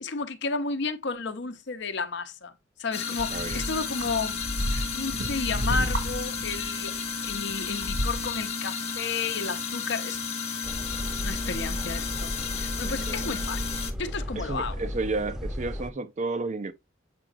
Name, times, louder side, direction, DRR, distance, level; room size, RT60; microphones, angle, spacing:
voice 1, 0.0-2.5 2.8-4.4 4.9-10.2 11.2-13.6 14.0-14.8, left 4 dB, 65° left, 0.8 m, -32 dB
sound 1, 2.9-13.9, left 5 dB, 35° left, 1.1 m, -33 dB
sound 2, 3.2-8.5 9.2-9.3, equal, 75° right, 2.0 m, -32 dB
voice 2, 3.3-3.7 12.8-13.3 14.4-16.7, right 3 dB, 40° right, 0.5 m, -32 dB
sound 3, 10.6-15.9, equal, 5° right, 0.7 m, -34 dB
7.5 x 5.0 x 2.5 m
head